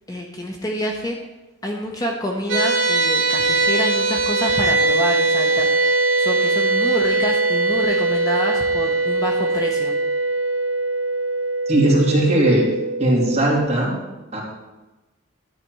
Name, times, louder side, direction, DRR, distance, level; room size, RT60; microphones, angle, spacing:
voice 1, 0.1-1.1 1.6-5.7 6.2-9.9, equal, 15° left, 1 dB, 0.8 m, -27 dB
sound 1, 2.5-13.7, right 2 dB, 65° right, 2.3 m, -21 dB
voice 2, 11.7-12.6 13.0-13.9 14.3-14.4, right 1 dB, 30° right, -4 dB, 2.7 m, -18 dB
11.0 x 4.2 x 7.6 m, 1.1 s
head